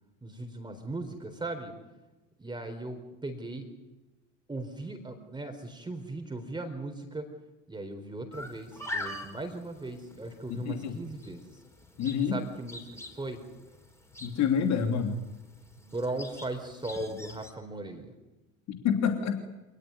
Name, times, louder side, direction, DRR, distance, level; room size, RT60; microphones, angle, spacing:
voice 1, 0.2-1.7 2.4-3.7 4.5-7.3 7.7-11.6 12.3-13.4 15.8-18.1, right 2 dB, 10° right, 5 dB, 4.2 m, -38 dB
sound 1, 8.3-17.5, left 1 dB, 5° left, 5.2 m, -44 dB
voice 2, 10.5-11.0 12.0-12.4 14.2-15.2 18.7-19.4, left 7 dB, 40° left, 5 dB, 3.1 m, -27 dB
27.0 x 20.0 x 9.7 m, 1.1 s
figure-of-eight pair, 75°, 41 cm